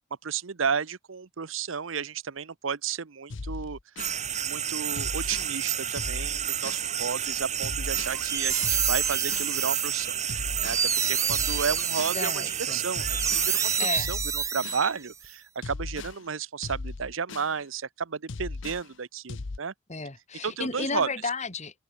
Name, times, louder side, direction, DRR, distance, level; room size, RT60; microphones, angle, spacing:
voice 1, 0.2-19.7 20.4-21.1, right 6 dB, 85° right, 0.8 m, -33 dB
sound 1, 3.3-4.2 4.9-5.5 6.0-6.9 7.6-8.2 8.6-9.5 10.3-10.9 11.3-12.2 12.9-13.5 14.0-14.9 15.6-16.2 16.6-17.5 18.3-18.9 19.3-19.6, left 3 dB, 70° left, 0.8 m, -37 dB
sound 2, 4.0-13.8, right 10 dB, 35° right, 1.8 m, -31 dB
sound 3, 8.0-15.3, right 7 dB, 15° right, 0.3 m, -29 dB
voice 2, 12.1-12.8 13.8-14.1 19.9-21.8, left 4 dB, 35° left, 3.1 m, -33 dB
open air
head